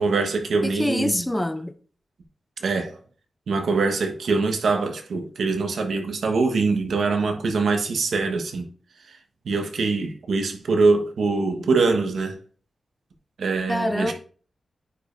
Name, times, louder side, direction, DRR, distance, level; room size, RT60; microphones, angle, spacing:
voice 1, 0.0-1.3 2.6-3.0 3.5-8.7 9.1-9.2 9.4-12.4 13.4-14.1, right 4 dB, 85° right, 1.2 m, -23 dB
voice 2, 0.6-1.7 13.7-14.1, left 1 dB, 10° left, 0.5 m, -25 dB
9.5 x 5.1 x 2.6 m
wide cardioid pair, 120°, 0 cm